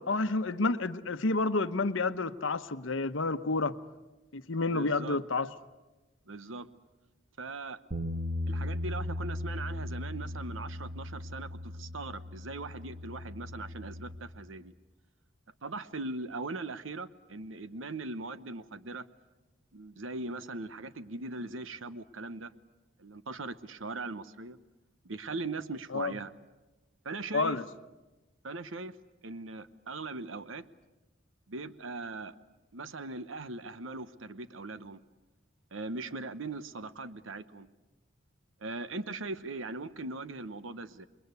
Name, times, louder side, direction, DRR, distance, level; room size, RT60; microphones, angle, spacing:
voice 1, 0.0-3.8 4.3-5.5 25.9-26.1 27.3-27.6, left 3 dB, 80° left, 1.0 m, -29 dB
voice 2, 4.7-5.2 6.3-6.7 7.4-7.8 8.5-14.7 15.6-19.1 19.7-22.5 23.0-24.6 25.0-26.3 27.0-27.6 28.4-29.0 29.2-30.7 31.5-32.4 32.7-35.0 35.7-37.7 38.6-41.1, right 3 dB, 85° right, 1.0 m, -40 dB
Bass guitar, 7.9-14.2, left 1 dB, 35° right, 2.3 m, -37 dB
28.0 x 22.0 x 8.3 m
head